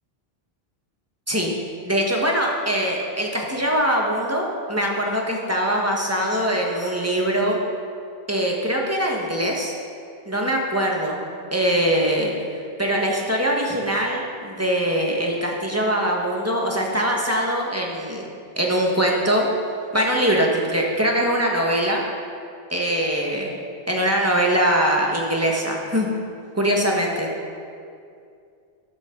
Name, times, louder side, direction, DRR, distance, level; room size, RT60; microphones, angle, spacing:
voice 1, 1.8-7.6 8.3-9.7 10.3-11.2 11.5-12.4 12.8-18.2 18.6-19.5 19.9-22.0 22.7-26.1 26.5-27.3, equal, 15° right, -2 dB, 1.3 m, -22 dB
12.5 x 9.8 x 3.8 m, 2.4 s
omnidirectional pair, 1.1 m